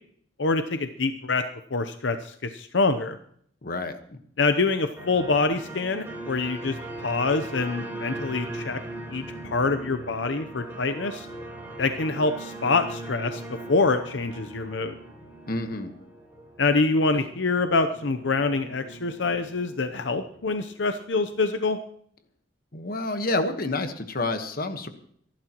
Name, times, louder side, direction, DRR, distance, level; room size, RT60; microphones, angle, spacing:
voice 1, 0.4-1.4 1.7-3.2 4.4-8.8 9.1-11.3 11.8-13.4 13.7-15.0 16.6-21.8, left 3 dB, 80° left, 8 dB, 0.8 m, -25 dB
voice 2, 3.6-4.2 15.5-15.9 22.7-24.9, left 2 dB, 55° left, 8 dB, 1.3 m, -29 dB
sound 1, 5.0-21.3, right 2 dB, 15° right, 3.9 m, -40 dB
26.0 x 11.5 x 3.0 m, 0.64 s
head